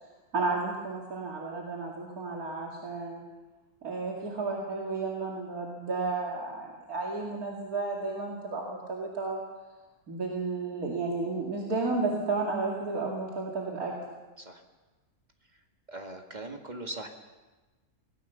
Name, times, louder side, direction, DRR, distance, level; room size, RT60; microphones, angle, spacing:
voice 1, 0.3-3.2 3.8-9.4 10.1-14.2, right 3 dB, 70° right, -2 dB, 2.9 m, -32 dB
voice 2, 15.9-17.1, right 1 dB, 30° right, 3 dB, 2.1 m, -40 dB
25.0 x 19.0 x 7.0 m, 1.2 s
omnidirectional pair, 1.6 m